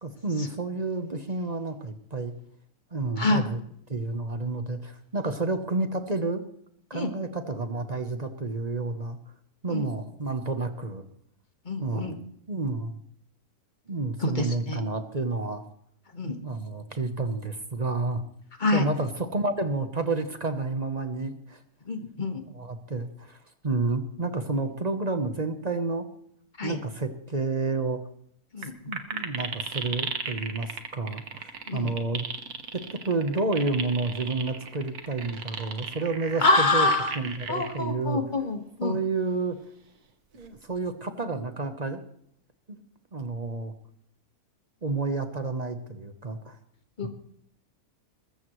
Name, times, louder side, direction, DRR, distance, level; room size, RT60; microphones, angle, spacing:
voice 1, 0.0-2.3 2.9-3.6 3.9-6.4 6.9-9.2 9.6-11.0 11.8-12.2 12.5-13.0 13.9-15.6 16.4-18.2 18.7-21.6 22.5-23.4 23.6-26.1 26.6-28.0 28.9-32.3 32.7-36.9 37.1-38.2 38.8-39.6 40.3-42.0 42.7-42.8 43.1-43.7 44.8-46.6 47.0-47.1, right 3 dB, 30° right, 8 dB, 1.0 m, -30 dB
voice 2, 11.7-12.2 14.2-14.8 16.1-16.4 18.6-18.8 21.9-22.4 26.6-26.8 28.5-28.7 31.7-31.9 36.4-37.1 37.5-39.0 47.0-47.1, left 2 dB, 30° left, 5 dB, 1.6 m, -26 dB
sound 1, 28.6-28.7 28.9-37.8 38.4-38.5 40.3-40.8, right 6 dB, 75° right, 1.8 m, -35 dB
21.5 x 14.0 x 3.2 m, 0.69 s
omnidirectional pair, 1.6 m